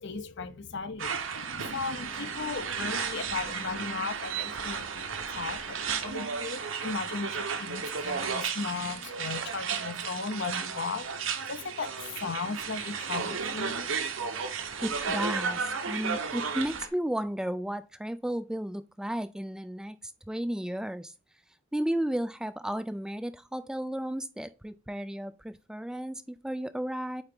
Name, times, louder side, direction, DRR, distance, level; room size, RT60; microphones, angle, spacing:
voice 1, 0.0-14.0, left 4 dB, 65° left, 0.7 m, -37 dB
sound 1, 1.0-16.9, right 6 dB, 80° right, 1.0 m, -34 dB
voice 2, 14.8-21.1 21.7-27.2, right 1 dB, 5° right, 0.3 m, -33 dB
8.9 x 3.8 x 3.7 m
head